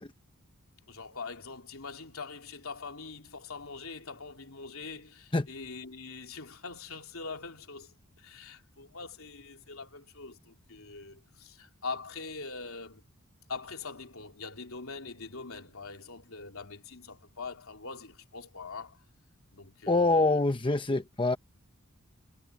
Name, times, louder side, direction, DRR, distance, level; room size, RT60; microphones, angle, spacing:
voice 1, 0.9-13.0 13.5-19.0 19.5-20.4, left 4 dB, 75° left, 3.6 m, -43 dB
voice 2, 19.9-21.4, left 2 dB, 25° left, 0.9 m, -25 dB
head